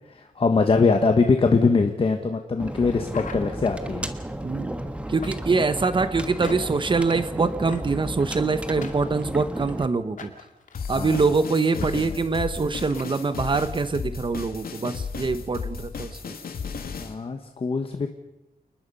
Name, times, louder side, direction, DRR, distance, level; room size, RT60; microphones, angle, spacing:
voice 1, 0.1-4.1 10.9-11.2 11.8-12.0 17.0-18.1, left 4 dB, 40° left, 5 dB, 1.4 m, -22 dB
sound 1, 2.6-9.9, right 1 dB, 10° right, 1.3 m, -33 dB
sound 2, 3.1-4.0 5.2-5.7 6.4-6.9 7.7-8.1 8.8-9.6 10.2-10.9 11.8-11.9 12.2-12.3 12.9-13.2, left 5 dB, 60° left, 2.5 m, -41 dB
voice 2, 4.4-4.8 5.1-10.3 10.9-16.2, right 4 dB, 35° right, 12 dB, 1.2 m, -24 dB
sound 3, 10.7-17.1, left 5 dB, 80° left, 2.5 m, -35 dB
29.5 x 20.5 x 5.5 m, 0.94 s
wide cardioid pair, 175°, 15 cm